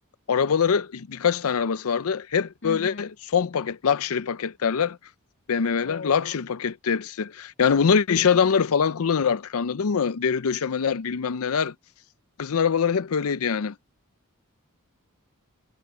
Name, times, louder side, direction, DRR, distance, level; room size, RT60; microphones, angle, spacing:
voice 1, 0.3-5.0 5.5-11.7 12.4-13.7, left 6 dB, 70° left, 0.5 m, -24 dB
voice 2, 2.6-3.1 5.8-6.4, left 4 dB, 55° left, 2.4 m, -37 dB
head